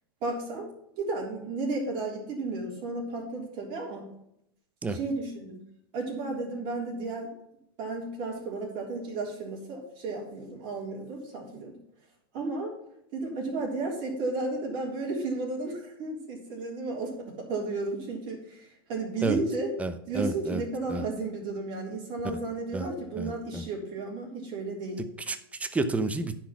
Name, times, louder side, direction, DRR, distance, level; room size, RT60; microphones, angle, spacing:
voice 1, 0.2-0.7 1.0-4.1 4.9-5.6 5.9-7.3 7.8-11.7 12.3-12.7 13.1-19.7 20.1-25.1, right 3 dB, 50° right, -3 dB, 3.6 m, -33 dB
voice 2, 19.8-20.6 20.9-21.0 22.7-22.9 23.2-23.6 25.3-26.4, right 2 dB, 10° right, 10 dB, 0.9 m, -30 dB
10.0 x 5.2 x 6.1 m, 0.77 s
hypercardioid pair, 105°, 12 cm